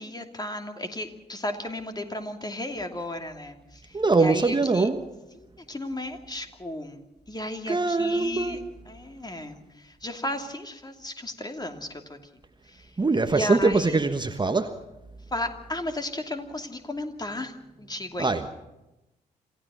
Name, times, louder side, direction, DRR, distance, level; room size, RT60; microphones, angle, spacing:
voice 1, 0.0-4.9 5.3-7.0 7.3-12.2 12.7-12.9 13.3-14.0 15.3-17.5 17.8-18.4, left 1 dB, 20° left, 2.7 m, -34 dB
voice 2, 3.9-5.0 7.7-8.6 13.0-14.7 18.2-18.5, right 3 dB, 20° right, 1.4 m, -23 dB
27.0 x 16.0 x 6.3 m
figure-of-eight pair, 40°, 20 cm